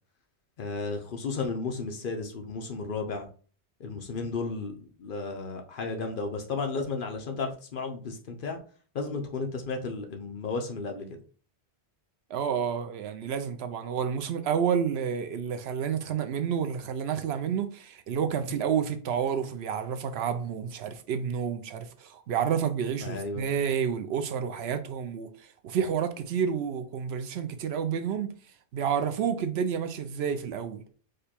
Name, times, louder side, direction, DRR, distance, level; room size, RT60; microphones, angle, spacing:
voice 1, 0.6-3.3 3.8-8.6 8.9-11.1 23.0-23.5, left 4 dB, 55° left, 0.8 m, -33 dB
voice 2, 12.3-28.3 28.7-30.9, right 7 dB, 70° right, 0.8 m, -30 dB
5.1 x 2.3 x 4.2 m
omnidirectional pair, 1.1 m